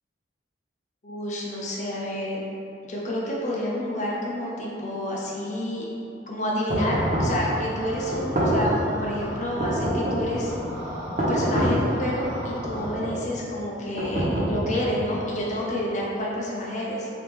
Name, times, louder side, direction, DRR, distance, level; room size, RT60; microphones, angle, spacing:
voice 1, 1.0-2.4 2.8-5.9 6.3-10.5 11.2-17.1, left 1 dB, 40° left, -4 dB, 0.6 m, -29 dB
sound 1, 6.7-7.4 8.1-8.8 9.6-10.4 11.2-11.9 12.6-13.2 14.0-14.9, right 1 dB, 40° right, 0.6 m, -25 dB
sound 2, 6.7-9.5 10.3-13.0, equal, 75° right, 1.1 m, -38 dB
3.4 x 2.9 x 3.3 m, 2.8 s
head